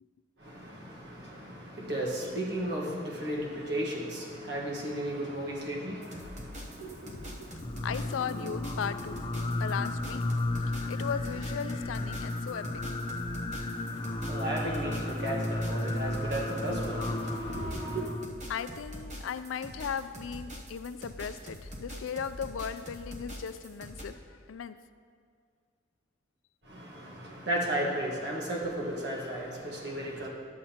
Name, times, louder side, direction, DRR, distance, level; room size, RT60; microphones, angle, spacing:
voice 1, 0.4-7.5 13.9-18.1 26.7-30.3, right 1 dB, 60° right, -2 dB, 1.4 m, -35 dB
sound 1, 6.0-24.0, equal, 40° right, 1.0 m, -44 dB
Singing, 7.5-18.3, left 1 dB, 25° left, 0.5 m, -34 dB
voice 2, 7.8-9.2 9.6-10.2 10.9-12.6 18.5-24.7, left 7 dB, 85° left, 12 dB, 0.4 m, -37 dB
11.0 x 7.3 x 2.9 m, 2.1 s
head